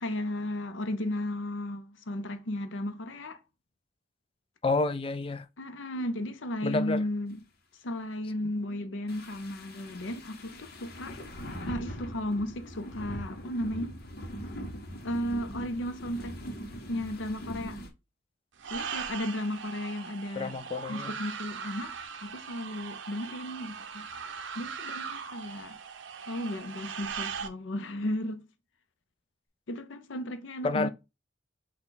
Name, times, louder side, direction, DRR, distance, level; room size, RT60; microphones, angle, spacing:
voice 1, 0.0-3.4 5.6-7.4 7.8-11.3 11.7-14.0 15.0-16.4 16.9-17.8 18.7-20.6 20.9-24.1 24.5-25.8 26.3-28.5 29.7-30.9, left 1 dB, 85° left, 0.6 m, -34 dB
voice 2, 4.6-5.5 6.6-7.0 20.4-21.1 30.6-30.9, left 3 dB, 30° left, 0.3 m, -29 dB
sound 1, 9.1-17.9, equal, 55° left, 0.9 m, -41 dB
sound 2, 18.6-27.5, right 6 dB, 80° right, 0.6 m, -39 dB
5.9 x 2.3 x 3.8 m
head